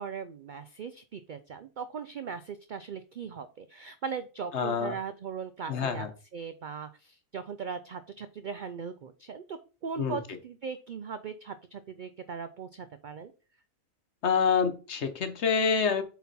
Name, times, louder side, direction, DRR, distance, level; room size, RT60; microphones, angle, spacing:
voice 1, 0.0-6.1 6.3-13.3, right 6 dB, 70° right, 0.4 m, -39 dB
voice 2, 4.5-4.9 5.7-6.1 10.0-10.2 14.2-16.0, left 6 dB, 55° left, 1.2 m, -27 dB
8.1 x 4.2 x 4.1 m
omnidirectional pair, 1.4 m